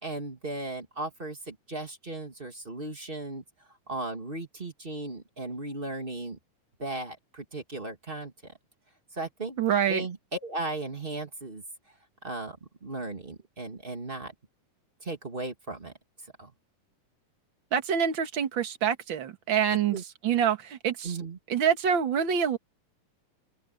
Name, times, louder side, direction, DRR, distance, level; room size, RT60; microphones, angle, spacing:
voice 1, 0.0-3.4 3.9-6.4 6.8-8.3 9.1-9.6 9.9-11.6 12.2-12.6 12.8-14.3 15.0-15.9 16.4-16.5 19.9-20.0 21.0-21.4, right 2 dB, 20° right, 1.9 m, -36 dB
voice 2, 9.6-10.0 17.7-20.0 20.2-21.2 21.5-22.6, right 8 dB, 45° right, 2.0 m, -26 dB
open air
omnidirectional pair, 3.8 m